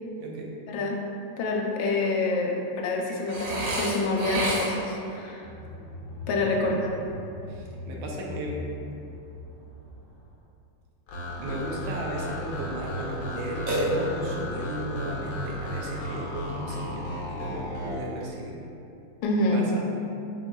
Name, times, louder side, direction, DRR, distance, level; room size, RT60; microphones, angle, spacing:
voice 1, 0.7-1.0 1.4-5.5 6.3-6.7 19.2-19.6, left 2 dB, 85° left, 0 dB, 1.3 m, -27 dB
Burping eructation, 3.3-5.0 13.7-14.4, right 1 dB, 55° right, 1.1 m, -29 dB
sound 1, 5.4-10.4, left 2 dB, 40° left, 0.8 m, -41 dB
voice 2, 6.3-6.7 7.5-8.6 11.4-18.6 19.5-19.8, right 1 dB, 80° right, -2 dB, 1.3 m, -34 dB
sound 2, 11.1-18.0, left 1 dB, 70° left, 1.1 m, -35 dB
4.3 x 3.8 x 2.2 m, 2.7 s
omnidirectional pair, 2.0 m